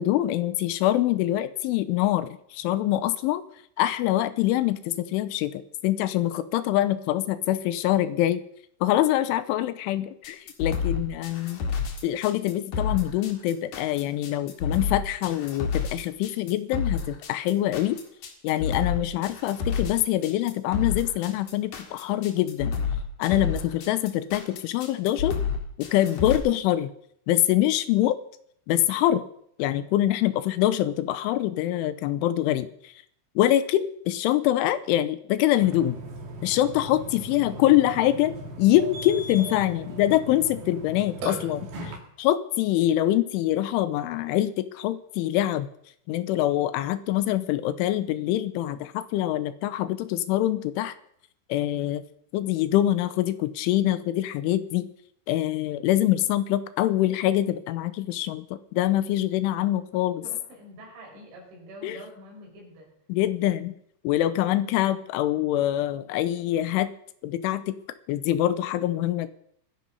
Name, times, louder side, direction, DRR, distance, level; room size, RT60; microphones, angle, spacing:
voice 1, 0.0-3.4 3.8-8.4 8.8-11.6 12.0-18.0 18.4-22.8 23.2-25.4 25.8-26.9 27.3-28.2 28.7-29.2 29.6-32.7 33.4-36.0 36.4-41.9 42.2-45.7 46.1-50.9 51.5-52.0 52.3-54.9 55.3-60.2 61.8-62.0 63.1-63.7 64.0-66.9 67.2-67.8 68.1-69.3, left 13 dB, 90° left, 13 dB, 3.4 m, -24 dB
sound 1, 10.2-26.4, left 6 dB, 55° left, 3.0 m, -29 dB
Burping eructation, 35.6-42.0, right 1 dB, 55° right, 4.4 m, -38 dB
voice 2, 37.3-37.8 60.2-62.9, equal, 70° right, -1 dB, 8.2 m, -46 dB
23.0 x 10.5 x 5.5 m, 0.68 s
omnidirectional pair, 5.5 m